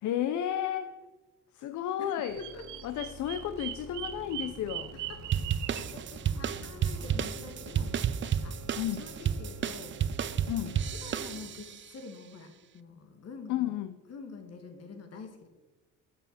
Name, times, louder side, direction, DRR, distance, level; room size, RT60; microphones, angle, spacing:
voice 1, 0.0-1.0 1.5-2.4 2.8-4.9 8.8-9.0 10.5-10.8 13.5-13.9, left 11 dB, 75° left, 10 dB, 0.6 m, -32 dB
voice 2, 2.0-2.7 4.9-8.6 9.0-10.0 10.9-13.7 14.1-15.5, left 4 dB, 55° left, 6 dB, 1.7 m, -47 dB
Bird vocalization bird call bird song, 2.1-5.9, right 13 dB, 80° right, 0.7 m, -40 dB
sound 1, 2.3-11.4, right 1 dB, 60° right, 1.7 m, -49 dB
sound 2, 5.3-11.8, right 8 dB, 40° right, 0.5 m, -32 dB
6.7 x 5.7 x 7.2 m, 1.1 s
cardioid pair, 90°, 30 cm